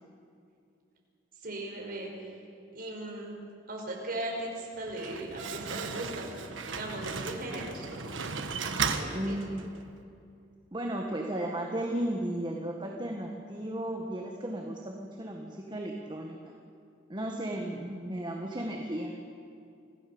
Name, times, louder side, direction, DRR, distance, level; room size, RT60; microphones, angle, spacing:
voice 1, 1.4-2.4 2.7-3.3 3.7-6.4 6.7-8.1 8.9-9.4 17.9-18.1, right 1 dB, 50° right, -1 dB, 5.5 m, -38 dB
Slam, 4.7-9.9, right 5 dB, 80° right, 1.4 m, -36 dB
voice 2, 9.1-9.8 10.7-16.4 17.1-19.1, right 1 dB, 25° right, 0 dB, 1.8 m, -34 dB
26.0 x 16.5 x 7.1 m, 2.5 s
head